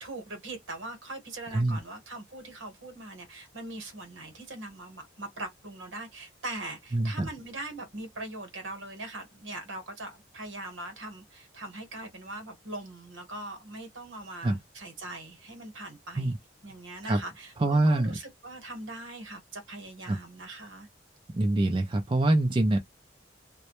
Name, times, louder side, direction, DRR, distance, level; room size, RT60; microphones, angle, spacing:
voice 1, 0.0-16.3 16.6-20.9, right 2 dB, 80° right, 1.0 m, -41 dB
voice 2, 6.9-7.3 14.4-14.6 16.2-16.4 17.0-17.2 17.6-18.2 20.1-20.2 21.3-22.8, right 2 dB, 25° right, 0.3 m, -25 dB
2.1 x 2.0 x 2.9 m
head